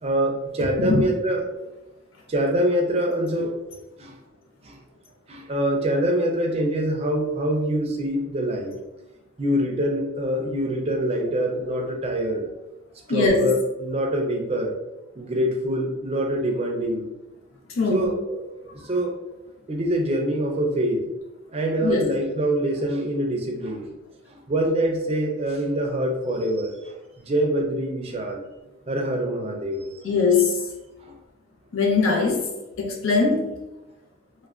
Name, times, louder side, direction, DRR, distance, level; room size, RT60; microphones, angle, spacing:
voice 1, 0.0-1.4 2.3-3.5 4.0-4.2 4.6-4.8 5.3-8.8 9.4-12.5 13.1-14.8 15.2-17.1 17.9-18.4 18.8-19.1 19.7-21.1 21.5-23.9 24.3-28.4 28.9-30.0 31.0-31.1, right 1 dB, 30° right, 1 dB, 0.4 m, -25 dB
voice 2, 0.8-1.1 13.1-13.5 17.7-18.1 18.8-18.9 21.8-22.1 30.0-30.6 31.7-32.5 32.8-33.5, left 4 dB, 85° left, 1 dB, 0.6 m, -21 dB
3.2 x 2.1 x 2.4 m, 1.0 s
head